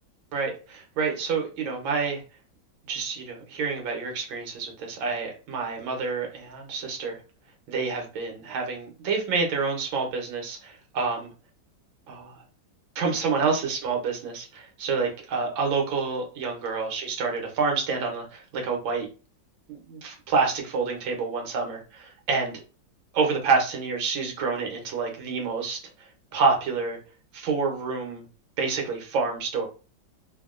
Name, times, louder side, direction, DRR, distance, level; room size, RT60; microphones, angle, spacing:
voice 1, 0.3-2.2 2.9-7.2 7.7-11.3 12.1-12.4 12.9-19.1 19.7-22.6 23.1-27.0 27.3-28.2 28.6-29.7, right 4 dB, 85° right, 2 dB, 1.7 m, -28 dB
3.6 x 2.1 x 2.4 m, 0.34 s
omnidirectional pair, 2.1 m